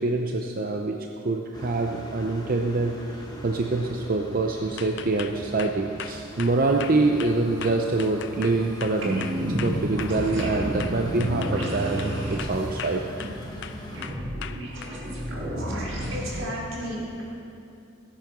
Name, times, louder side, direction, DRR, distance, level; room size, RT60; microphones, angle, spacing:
voice 1, 0.0-13.0, right 3 dB, 45° right, 2 dB, 0.6 m, -25 dB
sound 1, 1.5-14.0, left 1 dB, 20° left, 1.4 m, -41 dB
sound 2, 4.8-10.5 10.8-12.1 12.4-13.4 13.6-14.9, left 9 dB, 60° left, 0.5 m, -38 dB
sound 3, 9.0-16.4, equal, 65° right, 2.3 m, -31 dB
voice 2, 16.1-17.2, equal, 85° right, -4 dB, 3.4 m, -33 dB
15.5 x 8.6 x 6.1 m, 2.6 s
head